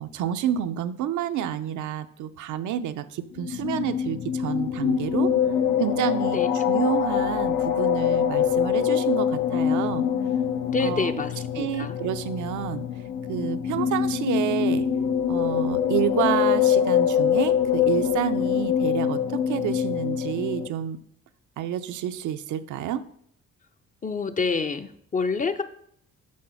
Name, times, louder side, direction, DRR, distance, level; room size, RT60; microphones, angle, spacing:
voice 1, 0.0-5.3 5.8-10.1 10.8-11.1 11.5-12.9 13.3-14.8 15.3-21.0 21.6-23.0, right 10 dB, 75° right, 10 dB, 0.6 m, -29 dB
sound 1, 3.3-20.7, left 8 dB, 80° left, 0.7 m, -24 dB
voice 2, 10.7-12.0 24.0-25.6, left 4 dB, 25° left, 10 dB, 0.5 m, -27 dB
6.4 x 3.9 x 5.6 m, 0.65 s
cardioid pair, 90°, 30 cm